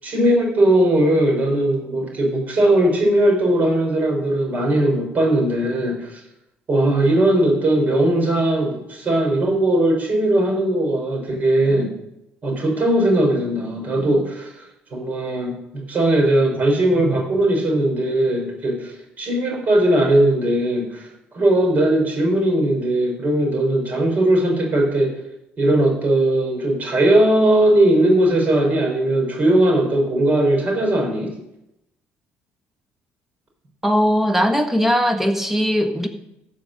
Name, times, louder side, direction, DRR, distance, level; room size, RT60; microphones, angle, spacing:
voice 1, 0.0-6.2 6.7-11.9 12.4-14.6 14.9-21.1 21.3-25.2 25.6-31.3, right 1 dB, 35° right, 1 dB, 4.4 m, -19 dB
voice 2, 33.8-36.1, equal, 5° right, 5 dB, 1.4 m, -19 dB
15.5 x 5.2 x 6.6 m, 0.85 s
cardioid pair, 130°, 5 cm